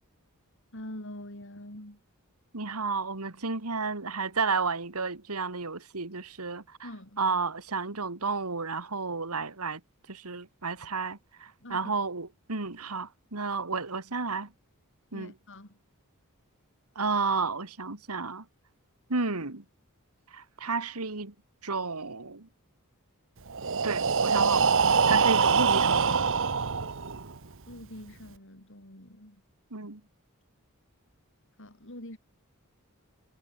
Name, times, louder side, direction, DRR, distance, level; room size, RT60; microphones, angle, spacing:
voice 1, 0.7-2.0 6.8-7.2 11.6-11.9 15.1-15.8 27.7-29.4 31.6-32.2, left 1 dB, 60° left, 5.9 m, -44 dB
voice 2, 2.5-6.9 7.2-9.8 10.1-14.5 15.1-15.3 17.0-18.4 19.1-19.6 20.3-21.3 21.6-22.5 23.8-24.7 25.1-26.3 29.7-30.0, right 4 dB, 85° right, 2.2 m, -32 dB
Breathing, 23.5-27.4, right 5 dB, 60° right, 1.2 m, -24 dB
head